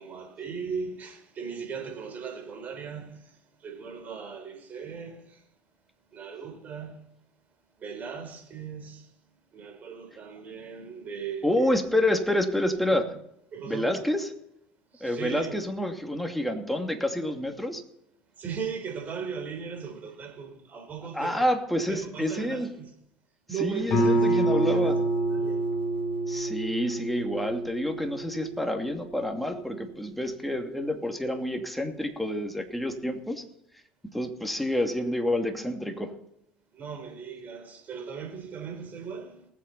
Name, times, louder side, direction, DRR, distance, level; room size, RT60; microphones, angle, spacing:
voice 1, 0.0-3.2 3.6-5.4 6.1-7.0 7.8-9.1 9.5-11.7 12.9-13.1 13.5-13.9 14.9-15.6 18.4-21.4 21.9-22.9 23.5-25.6 34.3-34.7 36.7-39.5, right 6 dB, 45° right, 4.2 m, -38 dB
voice 2, 11.4-13.0 13.7-14.3 15.0-17.8 21.1-22.7 23.6-25.0 26.3-33.4 34.1-36.1, left 1 dB, ahead, 2.5 m, -28 dB
Guitar, 23.9-29.3, right 2 dB, 50° left, 4.1 m, -27 dB
19.5 x 8.0 x 4.2 m
hypercardioid pair, 70°, 4 cm